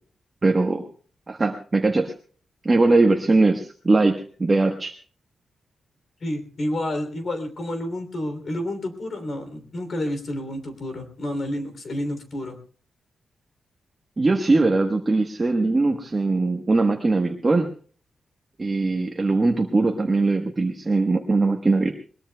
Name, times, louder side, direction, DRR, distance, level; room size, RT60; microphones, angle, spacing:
voice 1, 0.4-0.8 1.3-2.1 2.6-4.9 14.2-17.7 18.6-21.9, right 3 dB, 25° right, 3 dB, 1.2 m, -21 dB
voice 2, 6.2-12.6, left 1 dB, 50° left, 8 dB, 3.1 m, -30 dB
21.5 x 21.5 x 2.3 m, 0.43 s
wide cardioid pair, 150°, 0 cm